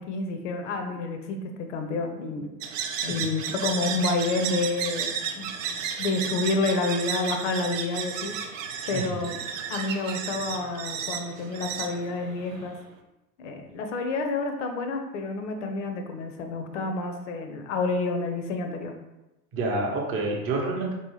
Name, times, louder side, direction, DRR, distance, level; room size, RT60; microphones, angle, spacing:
voice 1, 0.0-2.5 3.1-8.6 8.9-9.4 9.7-12.7 13.4-18.9, left 3 dB, 50° left, 5 dB, 0.6 m, -29 dB
sound 1, 2.6-12.8, right 7 dB, 55° right, 0.6 m, -33 dB
voice 2, 19.5-20.9, right 2 dB, 25° right, 0 dB, 0.8 m, -29 dB
4.4 x 2.7 x 3.1 m, 1.0 s
figure-of-eight pair, 85°, 49 cm